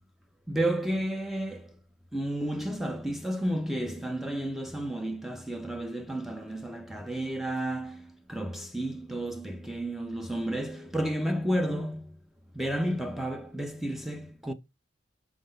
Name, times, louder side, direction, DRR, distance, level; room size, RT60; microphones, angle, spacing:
voice 1, 0.5-1.7 2.1-12.2 12.5-14.5, right 1 dB, ahead, 0.4 m, -32 dB
6.0 x 3.7 x 5.2 m
head